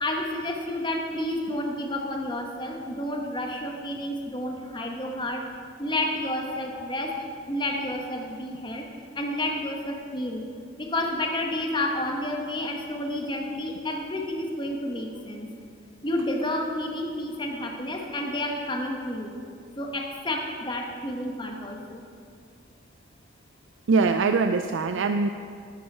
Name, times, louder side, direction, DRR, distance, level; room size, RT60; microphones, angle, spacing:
voice 1, 0.0-5.4 5.8-7.2 7.5-8.9 9.1-10.5 10.8-15.5 16.0-19.4 19.8-22.0, left 1 dB, 25° left, 1 dB, 1.1 m, -30 dB
voice 2, 23.9-25.3, right 4 dB, 80° right, 8 dB, 0.4 m, -22 dB
11.5 x 8.6 x 5.5 m, 2.4 s
head